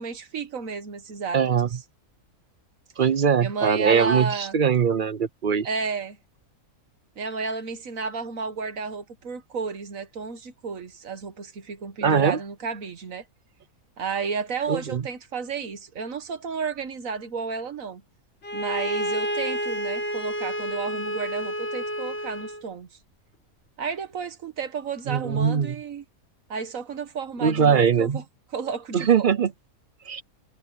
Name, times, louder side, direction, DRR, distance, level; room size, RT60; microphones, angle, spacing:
voice 1, 0.0-1.4 3.4-4.6 5.6-6.2 7.2-13.2 14.0-18.0 18.5-22.9 23.8-26.0 26.5-28.2 28.5-29.3, right 5 dB, 65° right, 1.6 m, -32 dB
voice 2, 1.3-1.7 3.0-5.7 12.0-12.4 14.7-15.0 25.1-25.7 27.4-28.2 28.9-29.5 30.1-30.2, right 7 dB, 50° right, 0.7 m, -21 dB
Bowed string instrument, 18.4-22.6, equal, 45° left, 1.8 m, -30 dB
omnidirectional pair, 1.5 m